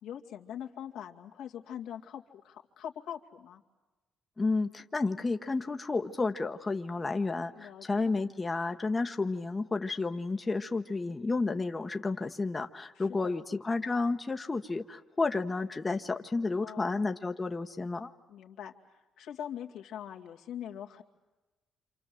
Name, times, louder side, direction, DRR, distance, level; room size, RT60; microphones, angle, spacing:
voice 1, 0.0-3.6 7.5-8.1 12.9-13.4 16.6-17.0 18.3-21.0, left 9 dB, 85° left, 1 dB, 2.2 m, -43 dB
voice 2, 4.4-18.1, left 3 dB, 25° left, 6 dB, 1.1 m, -31 dB
28.0 x 27.5 x 7.8 m, 1.2 s
cardioid pair, 90°, 0 cm